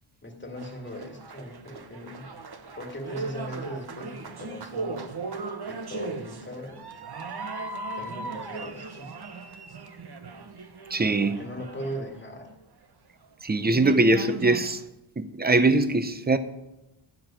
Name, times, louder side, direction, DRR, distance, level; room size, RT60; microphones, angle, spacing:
voice 1, 0.2-2.3 2.7-5.2 5.7-6.9 7.9-9.2 11.0-12.5, equal, 20° left, 2.1 m, -39 dB
sound 1, 0.6-12.5 13.2-13.3 13.6-14.8, right 3 dB, 50° right, 1.0 m, -38 dB
voice 2, 10.9-11.4 13.4-14.8 15.2-16.4, right 2 dB, 20° right, 0.6 m, -22 dB
11.5 x 6.1 x 9.0 m
wide cardioid pair, 145°, 49 cm